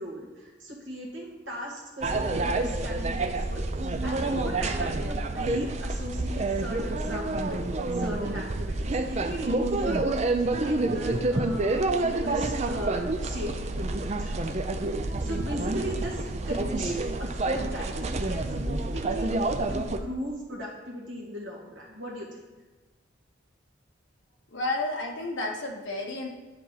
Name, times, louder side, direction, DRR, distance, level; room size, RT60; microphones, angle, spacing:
voice 1, 0.0-7.6 7.9-10.3 10.6-22.4, equal, 70° right, -2 dB, 1.9 m, -38 dB
sound 1, 2.0-20.0, right 2 dB, 35° right, 0.4 m, -28 dB
voice 2, 24.5-26.3, left 2 dB, 70° left, 0 dB, 1.3 m, -31 dB
9.9 x 4.2 x 4.1 m, 1.2 s
head